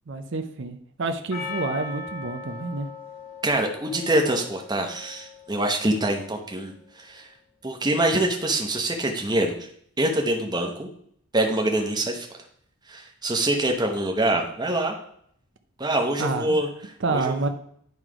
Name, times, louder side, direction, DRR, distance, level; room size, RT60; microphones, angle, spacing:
voice 1, 0.1-2.9 16.2-16.6 17.0-17.5, right 3 dB, 55° right, 7 dB, 0.6 m, -28 dB
Percussion, 1.3-5.8, left 4 dB, 65° left, 2.0 m, -39 dB
voice 2, 3.4-6.7 7.0-7.3 7.6-9.6 10.0-10.9 11.3-12.3 12.9-14.9 15.8-16.7 17.1-17.5, right 1 dB, 20° right, 2 dB, 0.8 m, -25 dB
9.3 x 3.2 x 4.9 m, 0.66 s
head